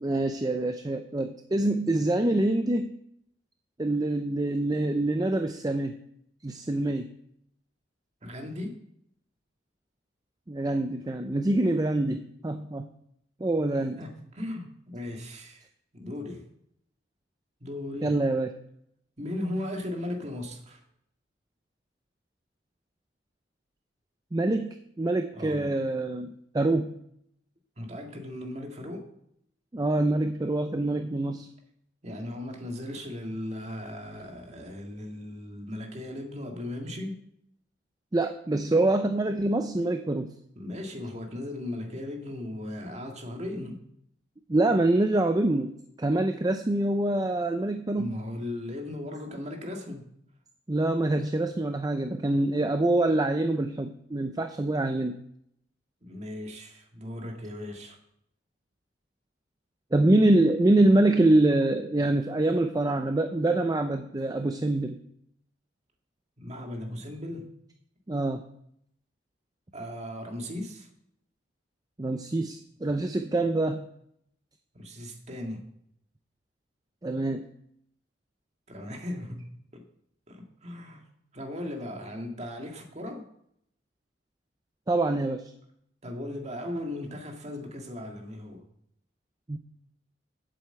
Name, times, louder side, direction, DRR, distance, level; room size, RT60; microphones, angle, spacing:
voice 1, 0.0-3.0 3.8-6.0 6.4-7.1 10.5-12.9 13.4-14.0 18.0-18.5 24.3-27.0 29.7-31.5 38.1-40.3 44.5-48.1 50.7-55.2 59.9-65.0 68.1-68.4 72.0-73.9 77.0-77.5 84.9-85.5 89.5-89.6, right 2 dB, 20° right, 7 dB, 0.5 m, -25 dB
voice 2, 8.2-8.8 14.0-15.7 15.9-16.5 17.6-18.2 19.2-20.8 25.3-25.7 27.8-29.1 32.0-37.2 40.6-43.8 47.9-50.1 56.0-58.0 66.4-67.5 69.7-70.9 74.7-75.6 78.7-79.9 80.3-81.0 81.3-83.3 86.0-88.6, left 1 dB, 35° right, 2 dB, 1.9 m, -37 dB
8.2 x 7.6 x 7.8 m, 0.73 s
head